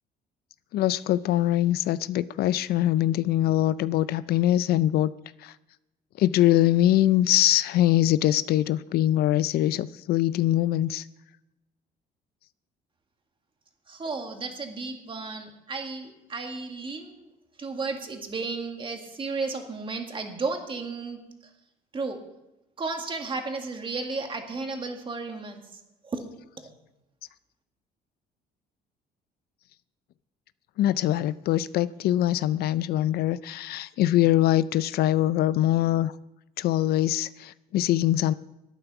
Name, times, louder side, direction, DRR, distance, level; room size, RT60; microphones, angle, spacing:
voice 1, 0.7-5.1 5.4-5.5 6.2-11.1 30.8-36.1 36.6-38.3, left 13 dB, 70° left, 0.4 m, -23 dB
voice 2, 13.9-17.3 17.6-21.2 21.9-22.2 22.8-26.2, right 4 dB, 30° right, 1.9 m, -33 dB
11.5 x 9.2 x 5.9 m
cardioid pair, 110°, 17 cm